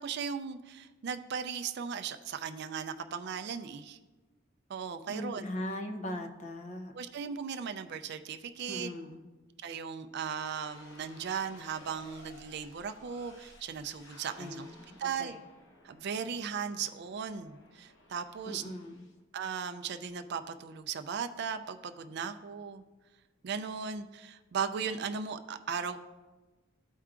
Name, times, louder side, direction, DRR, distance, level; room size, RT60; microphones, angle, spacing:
voice 1, 0.0-4.0 4.7-5.4 6.9-8.9 9.6-14.7 15.0-15.4 15.8-18.6 19.3-22.8 23.4-26.0, right 6 dB, 55° right, 9 dB, 0.4 m, -37 dB
voice 2, 5.1-6.9 8.7-9.3 14.4-15.4 18.4-19.1, left 1 dB, 35° left, 5 dB, 0.7 m, -40 dB
sound 1, 10.3-19.2, left 1 dB, 80° left, 0.9 m, -57 dB
13.5 x 4.5 x 2.5 m, 1.2 s
head